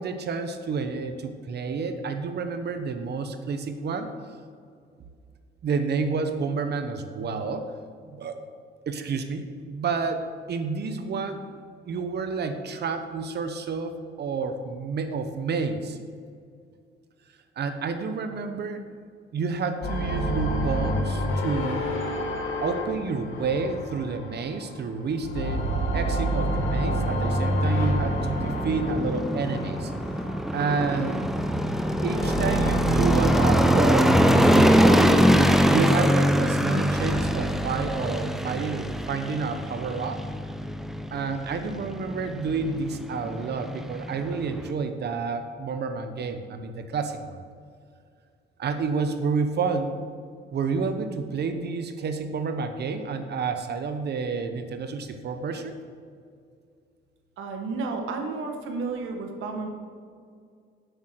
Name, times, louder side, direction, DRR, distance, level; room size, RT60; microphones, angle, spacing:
voice 1, 0.0-4.1 5.6-7.6 8.0-8.4 8.9-11.4 11.9-16.0 17.6-18.8 19.3-21.9 22.6-25.6 25.9-29.9 30.5-31.2 32.0-35.1 35.7-40.2 41.1-47.4 48.6-50.1 50.5-55.8, right 4 dB, 55° right, 8 dB, 0.9 m, -29 dB
sound 1, 19.8-24.8 25.1-30.4 31.2-37.2, equal, 80° left, 2.0 m, -29 dB
sound 2, 25.4-44.7, equal, ahead, 0.6 m, -24 dB
voice 2, 57.4-59.7, right 4 dB, 85° right, 4 dB, 1.4 m, -32 dB
8.0 x 5.8 x 6.5 m, 2.2 s
cardioid pair, 90°, 20 cm